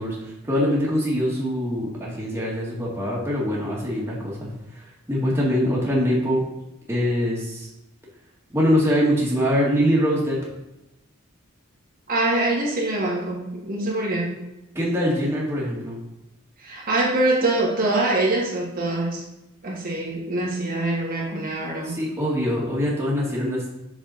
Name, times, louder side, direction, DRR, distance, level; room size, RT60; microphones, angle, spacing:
voice 1, 0.0-6.4 6.9-7.7 8.5-10.4 14.7-16.0 21.8-23.6, equal, 10° right, -5 dB, 1.8 m, -23 dB
voice 2, 12.1-14.4 16.6-19.2 19.6-22.0, right 2 dB, 45° right, -4 dB, 1.6 m, -24 dB
6.4 x 6.0 x 4.2 m, 0.93 s
head